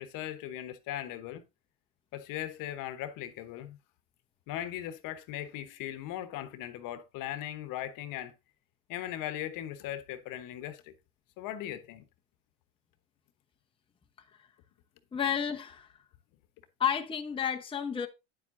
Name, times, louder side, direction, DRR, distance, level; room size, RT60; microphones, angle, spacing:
voice 1, 0.0-1.4 2.1-3.8 4.5-8.3 8.9-10.9 11.4-12.0, left 12 dB, 55° left, 1.1 m, -38 dB
voice 2, 15.1-15.9 16.8-18.1, left 8 dB, 15° left, 0.9 m, -31 dB
9.5 x 7.4 x 2.6 m
supercardioid pair, 105°, 38 cm